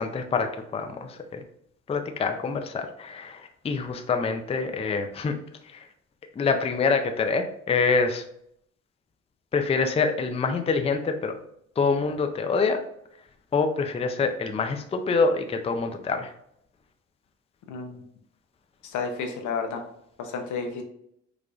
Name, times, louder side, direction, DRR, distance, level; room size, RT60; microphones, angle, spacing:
voice 1, 0.0-1.4 1.9-5.3 5.7-5.8 6.4-8.2 9.5-11.4 11.8-12.8 13.5-16.3, left 4 dB, 20° left, 6 dB, 0.4 m, -26 dB
voice 2, 17.7-18.0 18.8-19.8 20.2-20.8, left 5 dB, 75° left, 5 dB, 0.7 m, -31 dB
4.9 x 2.5 x 2.3 m, 0.71 s
cardioid pair, 90°, 30 cm